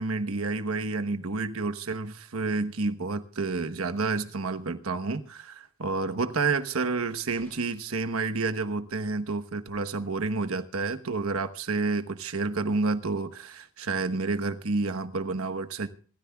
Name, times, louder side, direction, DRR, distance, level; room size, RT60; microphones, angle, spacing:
voice 1, 0.0-15.9, right 3 dB, 80° right, 1.1 m, -29 dB
sound 1, 7.3-8.1 9.7-9.8, left 1 dB, 10° left, 3.4 m, -57 dB
26.0 x 14.0 x 2.3 m
head